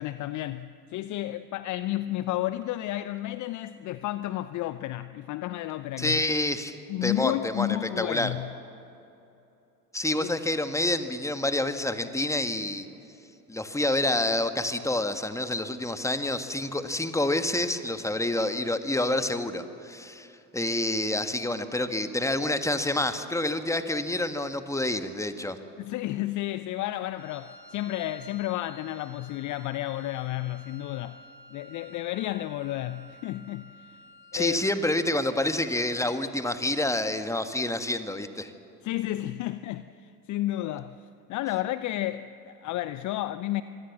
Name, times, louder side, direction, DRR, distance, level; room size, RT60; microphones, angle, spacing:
voice 1, 0.0-6.2 6.9-8.5 10.2-10.3 25.8-31.2 31.5-34.0 34.3-34.6 38.8-43.6, left 15 dB, 40° left, 0.7 m, -32 dB
voice 2, 6.0-6.8 7.0-8.3 9.9-12.9 13.5-20.3 20.5-25.6 34.3-38.5, left 1 dB, 5° left, 1.8 m, -28 dB
Wind instrument woodwind instrument, 27.1-36.4, left 1 dB, 85° left, 2.0 m, -52 dB
25.0 x 23.5 x 7.4 m
figure-of-eight pair, 65°, 47 cm